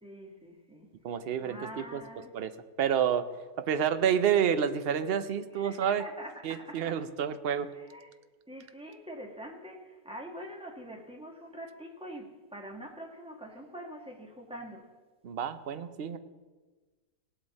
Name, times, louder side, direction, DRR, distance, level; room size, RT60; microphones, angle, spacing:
voice 1, 0.0-0.9 1.2-2.4 5.5-7.0 7.7-8.1 8.5-14.9, right 1 dB, 5° right, 1 dB, 1.4 m, -45 dB
voice 2, 1.0-2.0 2.3-2.5 2.8-3.3 3.6-6.0 6.4-7.7 15.2-16.2, right 8 dB, 60° right, 10 dB, 0.6 m, -29 dB
18.5 x 8.2 x 4.1 m, 1.3 s
omnidirectional pair, 1.7 m